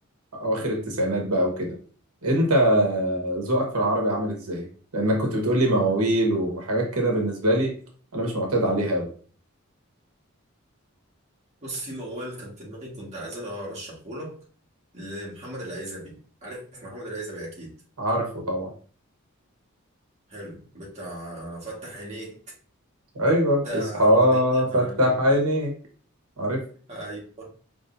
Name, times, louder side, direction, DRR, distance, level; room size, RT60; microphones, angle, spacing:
voice 1, 0.4-1.7 2.2-4.7 4.9-7.7 8.1-9.1 18.0-18.7 23.1-25.7 26.4-26.6, equal, 85° right, 1 dB, 1.3 m, -23 dB
voice 2, 11.6-14.3 14.9-16.1 16.4-17.7 20.3-22.3 23.6-25.4 26.9-27.5, right 1 dB, 30° right, -4 dB, 1.8 m, -37 dB
5.2 x 3.4 x 2.7 m, 0.43 s
head